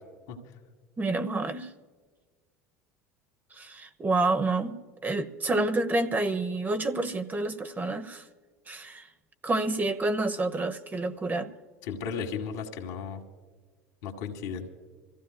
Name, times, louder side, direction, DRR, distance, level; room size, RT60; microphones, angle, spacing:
voice 1, 1.0-1.7 3.5-8.2 8.7-9.1 9.4-11.5, right 2 dB, 20° right, 9 dB, 0.9 m, -28 dB
voice 2, 11.8-13.2 14.0-14.7, left 6 dB, 65° left, 2 dB, 2.0 m, -35 dB
27.0 x 15.0 x 2.2 m, 1.5 s
hypercardioid pair, 75°, 8 cm